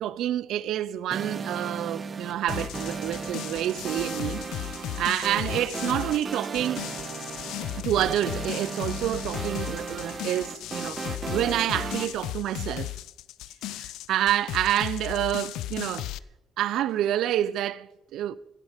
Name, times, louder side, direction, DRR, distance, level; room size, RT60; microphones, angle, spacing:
voice 1, 0.0-4.4 5.0-6.8 7.8-12.9 13.7-16.1 16.6-18.4, right 12 dB, 80° right, 0.5 m, -28 dB
sound 1, 1.1-12.1, right 5 dB, 40° right, 1.2 m, -36 dB
sound 2, 2.5-16.2, left 14 dB, 90° left, 0.5 m, -36 dB
16.0 x 12.5 x 5.1 m
cardioid pair, 90°, 0 cm